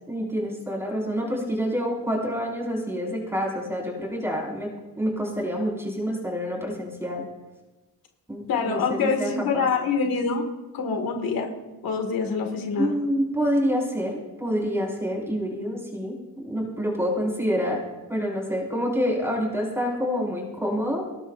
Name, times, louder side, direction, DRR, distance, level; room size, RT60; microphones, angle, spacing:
voice 1, 0.1-4.7 5.0-7.2 8.3-9.7 12.8-17.8 18.1-21.0, equal, 5° right, -2 dB, 5.4 m, -27 dB
voice 2, 8.5-10.5 10.7-11.5 11.8-12.9, left 5 dB, 70° left, 3 dB, 2.3 m, -25 dB
22.0 x 18.0 x 2.6 m, 1.1 s
cardioid pair, 130°, 36 cm